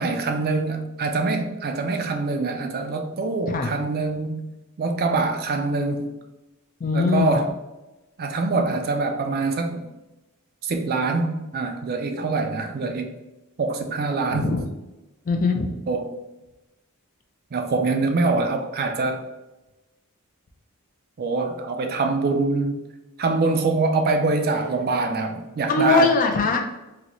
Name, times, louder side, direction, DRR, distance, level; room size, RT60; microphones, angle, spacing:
voice 1, 0.0-4.5 4.8-6.1 6.9-7.5 8.2-9.8 10.6-13.1 13.6-14.5 15.9-16.1 17.5-19.2 21.2-22.8 23.2-26.1, right 3 dB, 45° right, 5 dB, 0.4 m, -24 dB
voice 2, 6.8-7.4 14.3-14.6 15.3-15.7 25.7-26.6, left 3 dB, 40° left, 4 dB, 0.4 m, -21 dB
3.8 x 2.1 x 2.9 m, 1.0 s
head